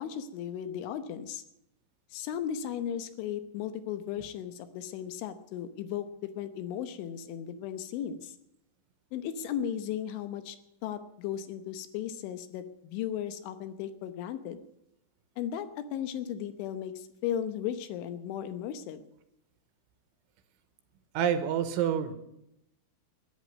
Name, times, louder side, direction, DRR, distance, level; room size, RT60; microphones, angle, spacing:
voice 1, 0.0-1.4 2.1-6.1 6.4-8.3 9.1-10.6 10.8-14.6 15.4-15.7 15.9-19.0, left 9 dB, 75° left, 10 dB, 3.3 m, -36 dB
voice 2, 21.1-22.1, right 9 dB, 80° right, 10 dB, 3.4 m, -27 dB
14.0 x 9.7 x 9.5 m, 0.81 s
omnidirectional pair, 5.8 m